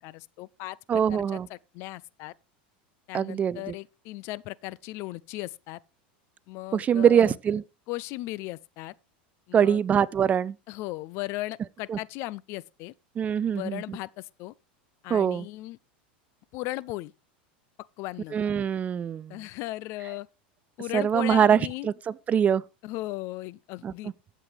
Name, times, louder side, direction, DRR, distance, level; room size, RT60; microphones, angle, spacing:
voice 1, 0.0-1.2 1.5-2.3 3.1-5.8 6.5-7.4 7.9-8.9 9.5-9.8 10.7-12.9 13.5-14.5 15.0-15.8 16.5-17.1 18.0-18.4 19.3-20.3 20.8-21.9 22.8-24.1, left 18 dB, 55° left, 0.4 m, -36 dB
voice 2, 0.9-1.5 3.1-3.7 6.7-7.6 9.5-10.6 11.9-12.0 13.2-14.0 15.1-15.5 18.3-19.4 20.9-22.6 23.8-23.9, right 8 dB, 25° right, 0.4 m, -23 dB
14.5 x 7.5 x 3.4 m
hypercardioid pair, 110°, 5 cm